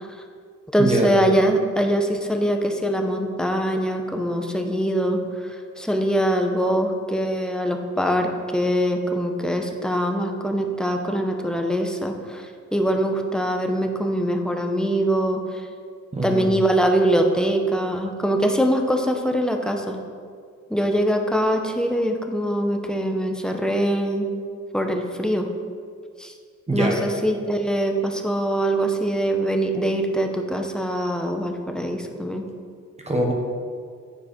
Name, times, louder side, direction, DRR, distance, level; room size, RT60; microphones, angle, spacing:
voice 1, 0.7-15.6 16.2-20.0 20.7-24.3 24.7-25.5 26.2-26.3 26.7-32.5, equal, ahead, 3 dB, 0.9 m, -23 dB
voice 2, 16.1-16.5 26.7-27.0 33.1-33.3, right 2 dB, 20° right, 0 dB, 1.2 m, -23 dB
9.7 x 4.7 x 5.1 m, 2.1 s
cardioid pair, 90°, 30 cm